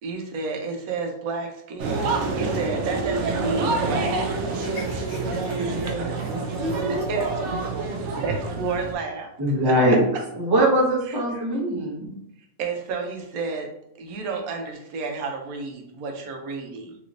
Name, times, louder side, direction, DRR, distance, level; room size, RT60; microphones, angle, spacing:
voice 1, 0.0-4.4 7.1-7.5 8.2-9.3 9.6-10.0 11.1-11.2 12.6-13.7 14.0-17.0, right 4 dB, 90° right, 3 dB, 1.1 m, -31 dB
sound 1, 1.8-8.9, right 3 dB, 65° right, 0.7 m, -27 dB
voice 2, 4.5-7.1 7.7-8.2, left 1 dB, 50° left, -3 dB, 1.0 m, -38 dB
voice 3, 9.4-10.0 10.4-12.1, right 1 dB, 30° right, -2 dB, 0.4 m, -21 dB
3.1 x 2.9 x 2.5 m, 0.77 s
omnidirectional pair, 1.5 m